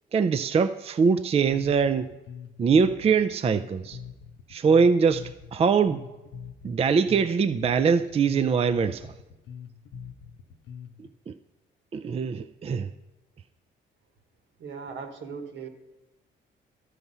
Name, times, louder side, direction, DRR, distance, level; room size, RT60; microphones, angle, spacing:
voice 1, 0.1-2.1 2.6-4.0 4.5-6.0 6.6-9.1 11.3-11.4 11.9-12.9, right 5 dB, 30° right, 10 dB, 0.4 m, -23 dB
Bass guitar, 1.5-11.1, left 7 dB, 90° left, 0.7 m, -43 dB
voice 2, 14.6-15.7, right 5 dB, 70° right, 6 dB, 1.3 m, -38 dB
12.5 x 5.9 x 5.5 m, 1.0 s
cardioid pair, 90°, 20 cm